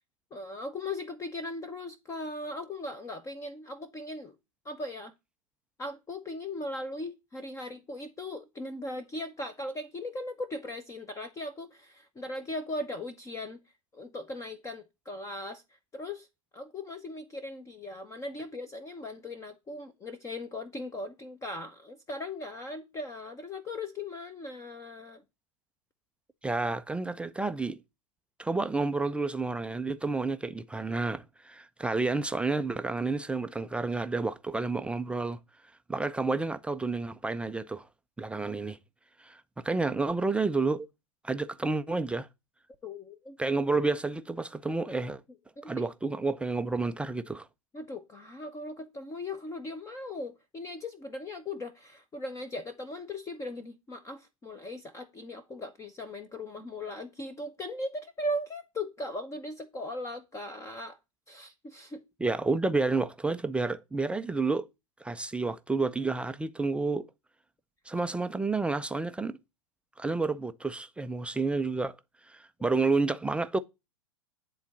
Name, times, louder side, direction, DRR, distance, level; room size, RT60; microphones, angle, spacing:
voice 1, 0.3-4.3 4.6-5.1 5.8-13.6 13.9-15.6 15.9-16.3 16.5-25.2 42.8-43.4 45.6-45.9 47.7-61.0 61.3-62.0, left 1 dB, 15° left, 0.9 m, -38 dB
voice 2, 26.4-27.8 28.4-35.4 35.9-37.9 38.2-38.8 39.2-40.9 41.2-42.3 43.4-45.2 45.6-47.5 62.2-64.7 65.0-67.1 67.9-69.4 70.0-72.0 72.3-73.6, right 3 dB, 5° right, 0.4 m, -30 dB
10.5 x 3.9 x 7.2 m
figure-of-eight pair, 95°, 19 cm